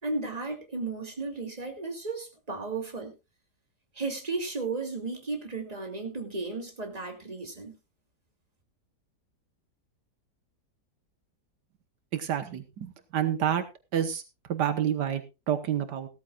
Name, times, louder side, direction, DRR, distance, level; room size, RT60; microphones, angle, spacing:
voice 1, 0.0-3.1 3.9-7.8, right 3 dB, 20° right, 3 dB, 2.6 m, -34 dB
voice 2, 12.1-13.6 13.9-14.2 14.5-16.1, right 10 dB, 80° right, 10 dB, 1.7 m, -28 dB
17.0 x 13.5 x 2.4 m, 0.27 s
omnidirectional pair, 1.8 m